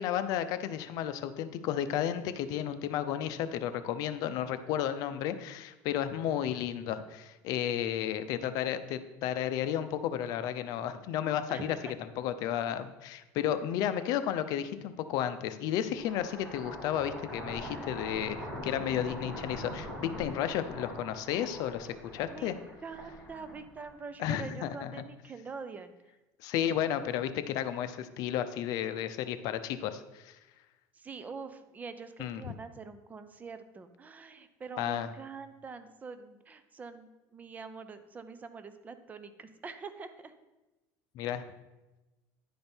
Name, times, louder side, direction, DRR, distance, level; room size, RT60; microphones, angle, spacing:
voice 1, 0.0-21.9 22.1-22.6 24.2-24.9 26.4-30.4 32.2-32.4 34.8-35.1 41.1-41.4, left 10 dB, 65° left, 11 dB, 0.6 m, -33 dB
voice 2, 11.5-11.9 22.3-25.9 30.9-40.3, right 4 dB, 25° right, 11 dB, 0.6 m, -45 dB
sound 1, 15.9-24.2, equal, 5° right, 3.1 m, -42 dB
10.5 x 5.1 x 4.4 m, 1.1 s
cardioid pair, 130°, 7 cm